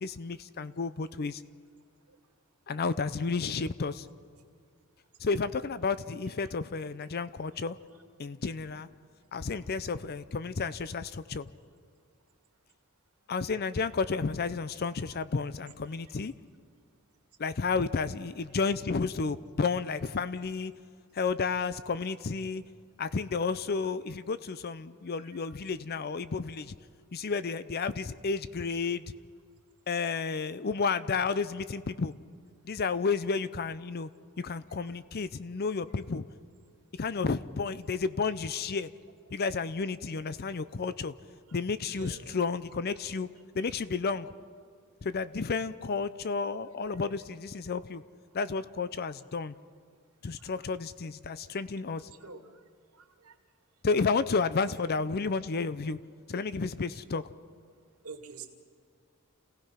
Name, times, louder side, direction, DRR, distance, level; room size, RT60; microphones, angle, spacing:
voice 1, 0.0-1.4 2.7-4.1 5.2-7.8 8.2-8.9 9.3-11.5 13.3-16.3 17.4-20.7 21.1-22.6 23.0-26.7 27.1-29.0 29.9-32.1 32.6-34.1 34.4-36.2 37.0-38.9 39.3-41.1 41.5-43.3 43.5-44.3 45.0-48.0 48.3-49.5 50.2-52.1 53.8-56.0 56.3-57.2, left 4 dB, 45° left, 14 dB, 0.5 m, -31 dB
voice 2, 53.0-53.3 58.0-58.5, right 4 dB, 85° right, 4 dB, 2.3 m, -45 dB
28.5 x 17.5 x 5.8 m, 2.2 s
head